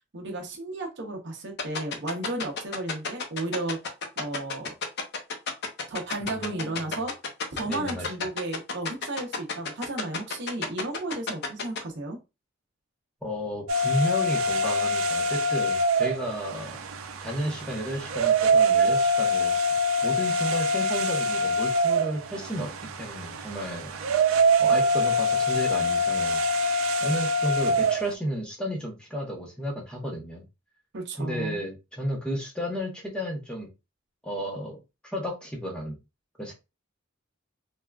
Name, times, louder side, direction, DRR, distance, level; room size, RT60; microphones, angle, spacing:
voice 1, 0.1-3.8 4.2-4.7 5.9-7.1 7.5-12.2 30.9-31.6, right 2 dB, 55° right, 2 dB, 0.7 m, -33 dB
sound 1, 1.6-11.8, left 5 dB, 55° left, 0.6 m, -30 dB
voice 2, 6.2-6.8 7.7-8.1 13.2-16.8 17.2-19.6 20.0-23.9 24.6-26.4 27.0-30.4 31.2-33.7 34.2-36.0 36.4-36.5, equal, 5° left, 0 dB, 0.7 m, -33 dB
sound 2, 13.7-28.1, right 1 dB, 85° right, 0.4 m, -24 dB
3.4 x 2.3 x 2.2 m, 0.26 s
head